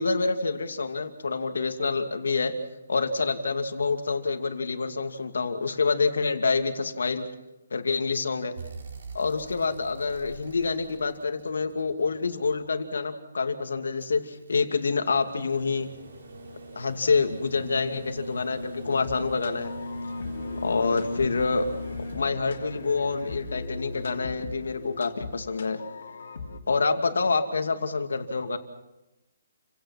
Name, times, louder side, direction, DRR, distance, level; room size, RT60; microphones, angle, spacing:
voice 1, 0.0-2.5 2.9-7.3 7.7-8.6 9.1-15.9 16.8-19.7 20.6-21.7 22.1-25.8 26.7-28.6, left 4 dB, 85° left, 7 dB, 2.6 m, -27 dB
sound 1, 8.6-12.7 14.0-25.2 26.8-26.9, equal, 55° right, 4.9 m, -41 dB
sound 2, 18.8-26.6, left 4 dB, 50° left, 3.1 m, -39 dB
29.5 x 17.0 x 6.1 m, 0.96 s
hypercardioid pair, 180°, 0 cm